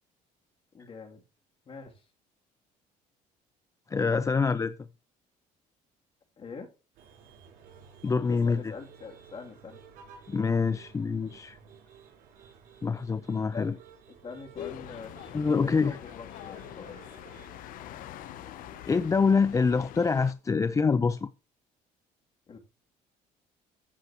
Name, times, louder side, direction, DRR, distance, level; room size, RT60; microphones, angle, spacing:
voice 1, 0.7-1.2 1.7-2.1 6.4-6.7 8.3-9.8 13.5-13.8 14.1-15.1 15.6-17.1 22.5-22.6, left 5 dB, 40° left, 3.0 m, -43 dB
voice 2, 3.9-4.7 8.0-8.7 10.3-11.6 12.8-13.7 15.3-16.0 18.9-21.3, left 5 dB, 20° left, 0.5 m, -25 dB
sound 1, 6.9-19.0, right 7 dB, 80° right, 6.7 m, -54 dB
sound 2, 14.5-20.3, left 12 dB, 70° left, 0.9 m, -44 dB
14.5 x 6.4 x 3.1 m
cardioid pair, 105°, 15 cm